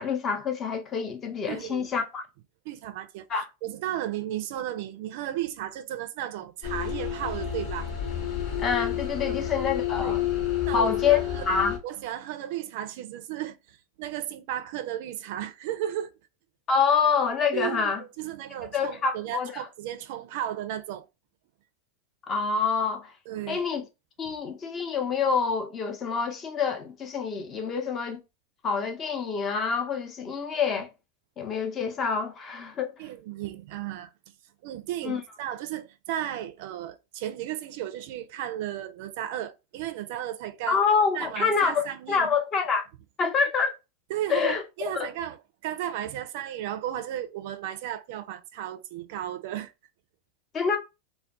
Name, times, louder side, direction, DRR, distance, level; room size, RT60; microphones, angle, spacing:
voice 1, 0.0-2.2 3.3-3.4 8.6-10.3 10.7-11.8 16.7-18.0 18.7-19.6 22.3-23.1 23.5-23.8 24.2-28.2 28.6-30.9 31.4-32.9 35.0-35.2 40.7-42.9 43.2-43.7 44.3-45.1 50.5-50.8, left 6 dB, 35° left, 0.6 m, -26 dB
voice 2, 1.5-1.9 2.7-3.3 3.6-7.9 9.3-9.4 10.0-10.2 10.6-11.5 11.8-16.1 17.5-21.0 23.3-23.7 33.0-34.1 34.6-40.8 41.1-42.3 44.1-45.4 45.6-49.7, right 12 dB, 60° right, 0.4 m, -34 dB
sound 1, 6.6-11.8, left 10 dB, 55° left, 0.9 m, -30 dB
2.3 x 2.1 x 2.5 m
hypercardioid pair, 100°, 0 cm